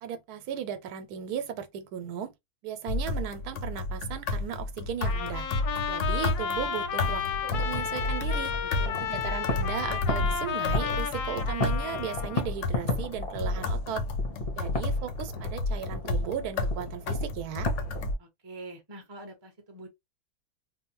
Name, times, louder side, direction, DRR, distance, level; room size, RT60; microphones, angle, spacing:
voice 1, 0.0-2.3 2.6-5.5 5.9-8.5 9.0-14.0 14.6-17.7, right 9 dB, 80° right, 1.1 m, -36 dB
sound 1, 2.9-18.1, left 2 dB, 65° left, 0.8 m, -31 dB
Trumpet, 5.0-12.5, left 8 dB, 90° left, 1.1 m, -33 dB
sound 2, 6.6-18.1, left 2 dB, 35° left, 0.5 m, -36 dB
voice 2, 8.6-9.2 14.6-14.7 15.0-15.1 18.2-19.9, right 2 dB, 25° right, 0.6 m, -45 dB
2.7 x 2.1 x 2.8 m
omnidirectional pair, 1.6 m